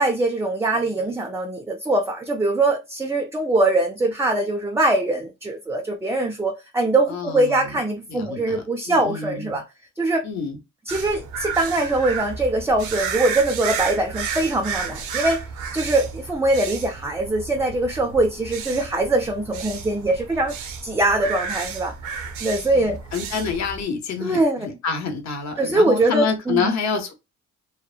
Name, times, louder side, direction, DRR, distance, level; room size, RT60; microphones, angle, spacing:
voice 1, 0.0-9.6 10.0-10.2 10.9-15.4 15.7-20.6 20.8-21.9 22.4-23.0 24.2-24.7 25.6-26.8, right 2 dB, 10° right, 0.3 m, -22 dB
voice 2, 7.1-7.8 8.1-9.6 10.2-10.6 22.7-27.1, left 5 dB, 65° left, 0.8 m, -28 dB
sound 1, 10.9-23.8, right 6 dB, 75° right, 0.6 m, -32 dB
2.9 x 2.1 x 2.3 m
cardioid pair, 90°, 30 cm